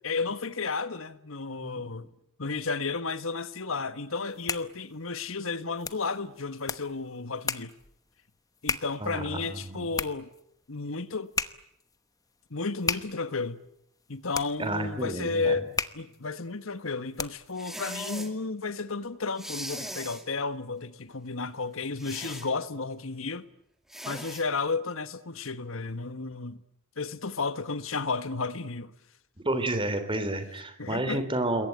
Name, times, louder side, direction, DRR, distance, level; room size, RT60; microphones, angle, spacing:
voice 1, 0.0-2.1 2.4-7.7 8.6-10.3 10.7-11.3 12.5-13.6 14.1-23.5 24.0-26.6 27.0-28.9 30.8-31.2, left 4 dB, 75° left, 1.4 m, -33 dB
sound 1, 4.1-17.6, left 4 dB, 15° left, 1.0 m, -37 dB
voice 2, 9.0-9.9 14.6-15.6 29.4-31.7, right 1 dB, 25° right, 3.6 m, -30 dB
sound 2, 17.6-18.3 19.4-20.2 22.0-22.5 23.9-24.4, equal, ahead, 2.6 m, -39 dB
27.5 x 22.0 x 9.2 m
head